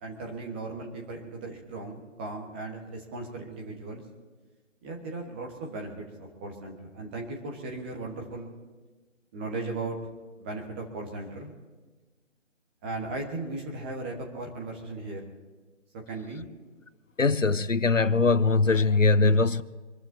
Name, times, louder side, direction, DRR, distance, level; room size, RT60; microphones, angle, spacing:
voice 1, 0.0-4.0 4.8-8.5 9.3-10.0 10.4-11.5 12.8-15.3 15.9-16.4, right 2 dB, 10° right, 1.4 m, -37 dB
voice 2, 17.2-19.6, left 3 dB, 85° left, 1.0 m, -21 dB
27.0 x 14.0 x 2.9 m
figure-of-eight pair, 150°, 37 cm